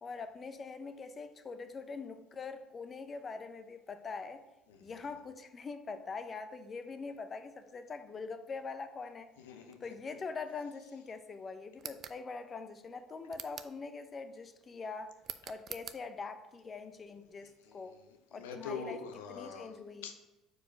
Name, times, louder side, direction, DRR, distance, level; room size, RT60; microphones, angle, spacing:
voice 1, 0.0-4.4 4.8-9.3 9.8-15.1 15.5-17.9 18.3-19.0 19.3-20.1, left 4 dB, 35° left, 0.6 m, -43 dB
voice 2, 9.4-9.8 17.6-19.7 20.0-20.3, left 5 dB, 90° left, 0.7 m, -45 dB
sound 1, 11.8-12.2 13.3-13.8 15.2-16.0, right 8 dB, 50° right, 0.4 m, -45 dB
4.7 x 4.6 x 4.5 m
hypercardioid pair, 70°, 0 cm